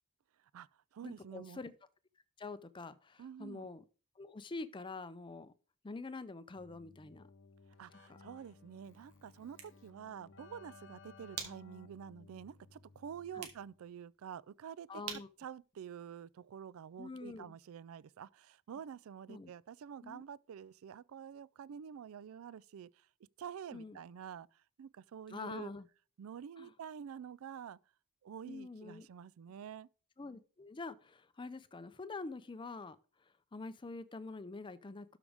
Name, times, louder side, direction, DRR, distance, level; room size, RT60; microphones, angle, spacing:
voice 1, 0.4-1.6 3.2-3.7 7.8-23.1 23.4-25.7 26.2-27.8 28.2-29.9, right 8 dB, 70° right, 0.3 m, -48 dB
voice 2, 1.0-1.7 2.4-3.8 4.2-5.5 5.8-7.3 13.3-13.5 14.9-15.3 17.0-17.5 19.3-19.5 20.0-20.2 23.7-24.0 25.3-25.9 26.6-26.7 28.5-29.1 30.2-33.0 33.5-35.2, left 3 dB, 20° left, 0.5 m, -46 dB
Keyboard (musical), 6.5-13.8, left 4 dB, 55° left, 0.7 m, -59 dB
sound 1, 9.3-16.7, right 7 dB, 90° right, 1.7 m, -52 dB
12.5 x 4.9 x 3.5 m
head